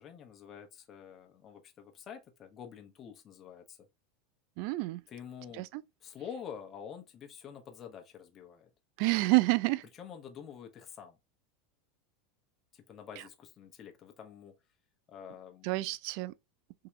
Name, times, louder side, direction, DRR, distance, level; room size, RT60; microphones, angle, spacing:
voice 1, 0.0-3.9 5.1-5.7 6.0-8.7 10.0-11.2 12.7-14.6 15.1-15.7, left 8 dB, 30° left, 0.9 m, -47 dB
voice 2, 4.6-5.0 5.6-5.8 9.0-9.8 15.6-16.3, right 22 dB, 60° right, 0.3 m, -28 dB
3.7 x 2.8 x 3.1 m
supercardioid pair, 130°, 0 cm